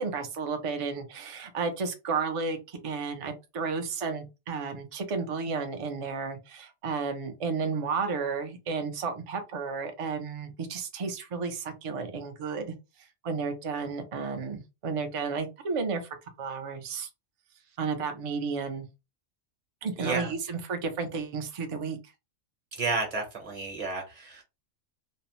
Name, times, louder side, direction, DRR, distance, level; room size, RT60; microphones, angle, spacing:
voice 1, 0.0-12.7 13.2-17.1 17.8-18.9 19.8-22.0, right 4 dB, 55° right, 6 dB, 0.3 m, -32 dB
voice 2, 20.0-20.3 22.7-24.4, right 3 dB, 30° right, 2 dB, 0.9 m, -31 dB
2.6 x 2.0 x 2.9 m, 0.26 s
omnidirectional pair, 1.3 m